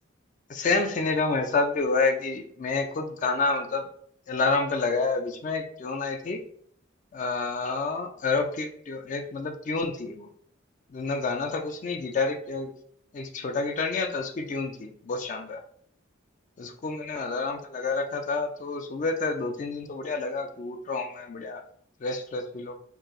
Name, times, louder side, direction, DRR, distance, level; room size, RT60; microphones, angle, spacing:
voice 1, 0.5-3.8 4.3-6.4 7.1-10.3 10.9-12.7 13.1-15.6 16.6-21.6 22.0-22.8, left 3 dB, 40° left, 6 dB, 0.4 m, -28 dB
4.6 x 2.7 x 3.0 m, 0.63 s
head